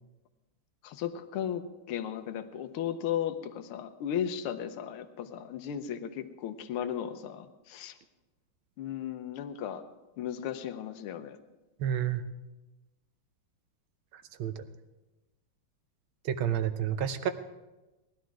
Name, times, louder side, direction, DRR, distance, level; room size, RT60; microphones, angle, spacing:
voice 1, 0.8-8.0 8.8-9.8 10.2-11.4, left 9 dB, 85° left, 8 dB, 1.7 m, -35 dB
voice 2, 11.8-12.2 14.1-14.6 16.2-17.3, right 9 dB, 70° right, 10 dB, 1.6 m, -30 dB
19.0 x 11.5 x 4.7 m, 1.1 s
omnidirectional pair, 2.3 m